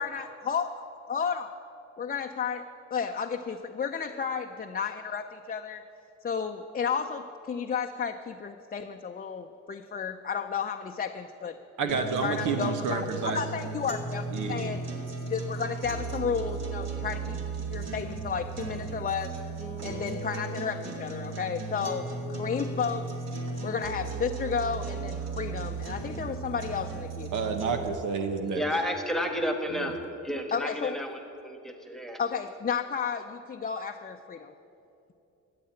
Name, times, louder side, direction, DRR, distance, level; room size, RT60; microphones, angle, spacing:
voice 1, 0.0-0.7 1.1-1.5 2.0-5.8 6.2-11.6 11.8-14.9 15.3-19.3 19.8-23.1 23.6-27.3 30.5-31.0 32.2-34.5, left 6 dB, 30° left, 4 dB, 0.6 m, -32 dB
voice 2, 11.8-13.4 14.3-14.7 27.3-28.6 29.7-30.0, right 5 dB, 80° right, 7 dB, 1.2 m, -30 dB
sound 1, 11.9-27.9, right 4 dB, 60° right, 2.2 m, -36 dB
voice 3, 28.5-30.0 30.2-32.2, equal, ahead, 5 dB, 1.4 m, -31 dB
13.5 x 7.6 x 8.8 m, 2.8 s
cardioid pair, 90°, 30 cm